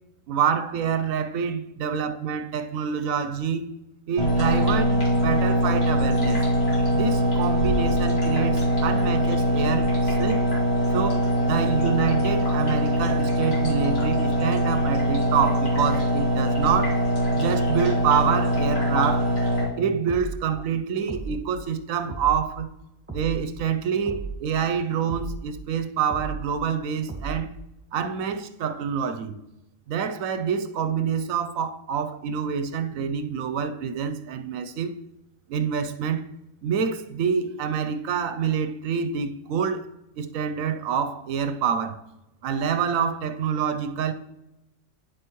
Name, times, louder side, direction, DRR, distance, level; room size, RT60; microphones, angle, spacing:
voice 1, 0.3-3.7 4.1-6.4 6.9-10.4 10.9-17.0 17.3-19.3 19.8-22.7 23.1-27.5 27.9-29.4 29.9-34.9 35.5-36.3 36.6-42.0 42.4-44.1, right 7 dB, 75° right, 1.0 m, -27 dB
sound 1, 4.2-19.6, equal, 45° left, 2.4 m, -22 dB
sound 2, 20.1-20.5 21.1-21.5 22.1-22.5 23.1-23.5 24.0-24.5 25.1-25.5 26.1-26.5 27.1-27.5, right 4 dB, 10° right, 1.6 m, -34 dB
9.4 x 7.8 x 3.0 m
omnidirectional pair, 1.4 m